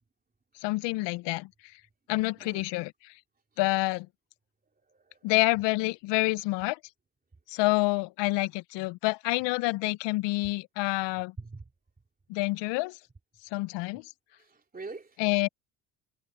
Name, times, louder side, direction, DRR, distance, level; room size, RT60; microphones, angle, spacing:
voice 1, 0.6-1.5 2.1-2.9 3.6-4.1 5.2-6.8 7.5-11.3 12.3-13.0 13.5-14.0 15.2-15.5, left 22 dB, 70° left, 0.7 m, -27 dB
voice 2, 4.9-5.3 11.4-11.6 14.3-15.2, right 3 dB, 20° right, 3.3 m, -44 dB
supercardioid pair, 80°, 44 cm